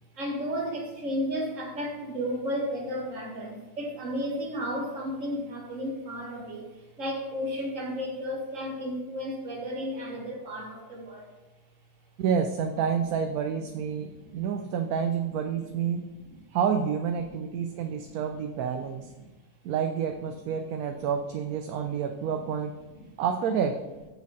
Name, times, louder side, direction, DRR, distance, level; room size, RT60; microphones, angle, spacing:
voice 1, 0.2-11.3 13.9-14.4 16.3-16.4 17.3-17.4 17.9-18.2 19.2-19.3 21.9-22.3 22.9-23.1, equal, 50° right, 0 dB, 1.9 m, -33 dB
voice 2, 12.2-16.0 16.5-19.1 19.6-22.7 23.2-23.7, right 7 dB, 75° right, 5 dB, 1.1 m, -29 dB
6.6 x 5.2 x 6.2 m, 1.1 s
omnidirectional pair, 1.7 m